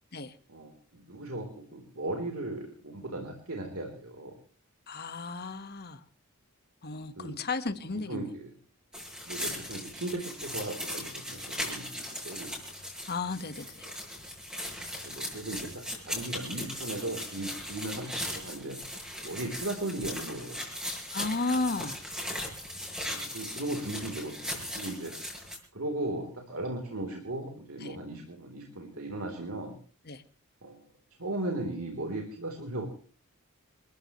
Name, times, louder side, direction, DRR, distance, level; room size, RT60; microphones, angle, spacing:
voice 1, 0.5-4.3 7.2-7.4 7.7-7.8 8.1-8.5 9.3-12.5 15.0-18.8 19.2-20.7 23.1-25.1 25.7-29.7 30.6-30.8 31.2-32.9, right 2 dB, 70° right, 2 dB, 3.8 m, -37 dB
voice 2, 4.9-6.0 6.8-8.3 13.1-13.7 21.1-22.0 27.8-27.9 30.1-30.2, left 3 dB, 50° left, 9 dB, 1.6 m, -33 dB
sound 1, 8.9-25.6, equal, 5° right, 6.8 m, -38 dB
28.5 x 15.0 x 3.2 m, 0.43 s
head